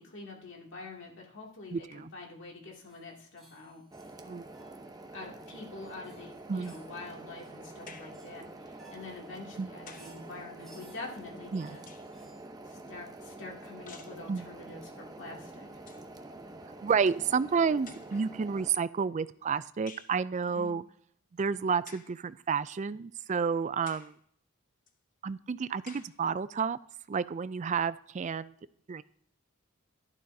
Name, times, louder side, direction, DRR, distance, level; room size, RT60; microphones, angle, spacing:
voice 1, 0.0-3.8 5.1-11.8 12.7-15.8 20.5-20.7, left 3 dB, 55° left, -2 dB, 2.4 m, -46 dB
voice 2, 1.7-2.1 4.2-4.5 6.5-6.7 9.6-9.7 11.5-11.8 14.3-14.4 16.8-20.8 21.3-24.1 25.2-26.8 27.1-28.5 28.9-29.0, right 6 dB, 35° right, 16 dB, 0.3 m, -30 dB
sound 1, 2.8-12.4, right 2 dB, ahead, 4.4 m, -61 dB
sound 2, 3.9-18.7, right 2 dB, 20° right, 0.7 m, -47 dB
sound 3, 7.9-8.3 9.4-10.2 11.4-12.3 13.9-14.3 15.4-15.5 15.7-16.1 17.1-17.2 17.9-18.4 19.9-20.2 21.9-22.2 22.9-23.0 23.9-24.2 24.9-25.0 25.9-26.2, left 5 dB, 40° left, 0.8 m, -52 dB
12.0 x 11.5 x 2.7 m, 0.65 s
head